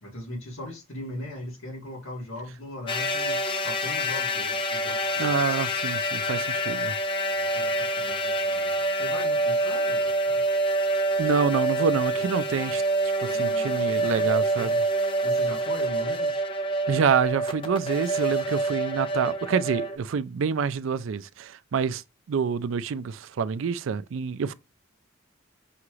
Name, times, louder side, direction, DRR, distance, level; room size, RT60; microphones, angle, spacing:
voice 1, 0.0-5.4 7.3-10.4 13.2-14.3 14.6-14.8 15.2-16.4, left 1 dB, 90° left, 1.8 m, -39 dB
sound 1, 2.9-20.0, right 1 dB, 25° left, 0.5 m, -26 dB
voice 2, 5.2-6.9 11.2-12.8 13.2-14.8 16.9-22.0 22.3-24.5, right 6 dB, 70° right, 0.4 m, -27 dB
5.7 x 2.5 x 3.1 m
head